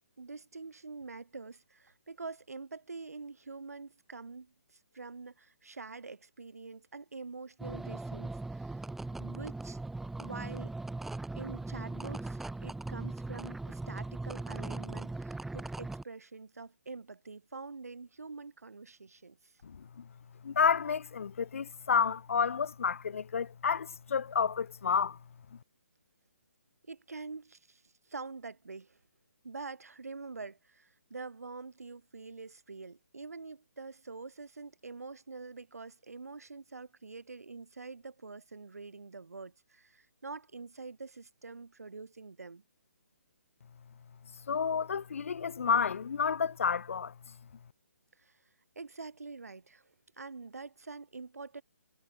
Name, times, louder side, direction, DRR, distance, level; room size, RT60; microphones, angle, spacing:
voice 1, 0.2-8.9 9.2-9.8 10.2-10.7 11.4-19.5 26.9-27.8 28.1-29.0 29.4-42.6 48.2-48.4 48.7-51.6, right 4 dB, 75° right, 6.3 m, -46 dB
sound 1, 7.6-16.0, right 2 dB, 5° right, 2.2 m, -39 dB
voice 2, 19.6-20.1 20.4-25.2 44.5-47.1, left 6 dB, 60° left, 1.0 m, -30 dB
figure-of-eight pair, 140°, 8 cm